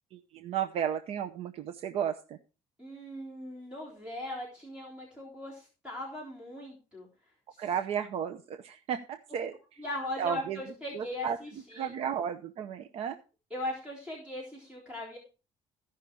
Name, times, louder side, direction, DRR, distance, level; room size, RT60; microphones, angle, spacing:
voice 1, 0.1-2.4 7.6-9.8 10.2-10.6 10.9-11.4 11.7-13.2, right 8 dB, 60° right, 8 dB, 0.7 m, -33 dB
voice 2, 2.8-7.1 9.8-11.9 13.5-15.2, left 1 dB, 10° right, -4 dB, 3.7 m, -39 dB
15.5 x 5.8 x 4.7 m, 0.33 s
cardioid pair, 150°, 12 cm